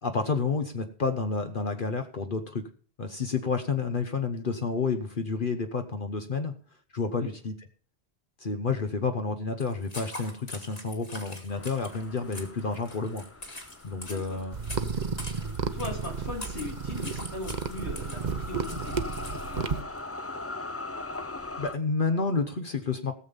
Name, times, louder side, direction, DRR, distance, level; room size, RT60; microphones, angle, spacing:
voice 1, 0.0-2.6 3.0-6.5 6.9-7.5 8.4-13.2 13.8-14.5 21.6-23.1, left 4 dB, 55° left, 6 dB, 1.1 m, -30 dB
sound 1, 9.6-19.6, left 2 dB, 40° left, 2.0 m, -44 dB
sound 2, 11.5-21.8, left 2 dB, 15° left, 0.6 m, -42 dB
voice 2, 14.0-14.4 15.4-19.0 19.4-19.9, left 2 dB, 85° left, 0 dB, 3.7 m, -39 dB
sound 3, 14.5-19.8, right 5 dB, 45° right, 0.9 m, -33 dB
17.0 x 7.2 x 5.3 m, 0.42 s
omnidirectional pair, 1.1 m